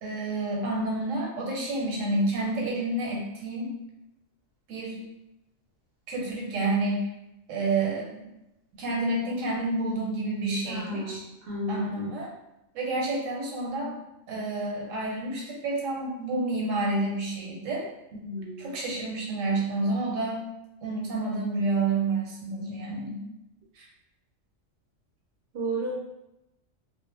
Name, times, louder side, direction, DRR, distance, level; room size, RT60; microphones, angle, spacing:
voice 1, 0.0-3.7 4.7-5.0 6.1-7.1 7.5-8.2 8.8-11.2 11.7-12.3 12.7-14.0 14.3-17.9 18.6-20.4 20.8-23.2 23.8-23.9, right 2 dB, 90° right, -2 dB, 1.0 m, -29 dB
voice 2, 10.7-11.2 11.5-12.1 18.2-18.7 25.5-25.9, right 1 dB, 60° right, -4 dB, 0.7 m, -32 dB
2.1 x 2.0 x 3.1 m, 0.90 s
omnidirectional pair, 1.3 m